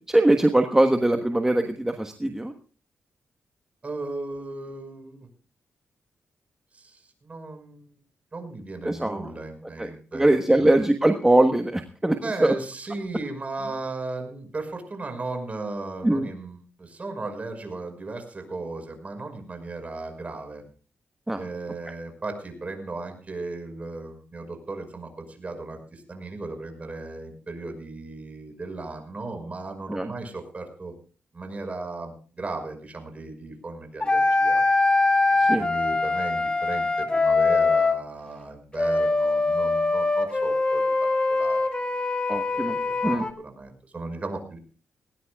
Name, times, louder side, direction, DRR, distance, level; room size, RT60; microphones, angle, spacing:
voice 1, 0.1-2.5 8.8-9.2 9.8-12.5 16.0-16.3 21.3-21.4 29.9-30.1 35.4-35.6 42.3-42.8 43.0-43.2, right 1 dB, 10° right, 5 dB, 1.3 m, -22 dB
voice 2, 3.8-5.3 6.7-7.9 8.3-10.8 12.2-20.6 21.4-30.9 31.3-34.6 35.4-42.0 42.5-44.6, right 3 dB, 35° right, 6 dB, 5.5 m, -36 dB
sound 1, 34.0-38.0 38.8-43.3, left 3 dB, 25° left, 1.9 m, -23 dB
19.0 x 18.5 x 2.4 m, 0.39 s
cardioid pair, 80°, 4 cm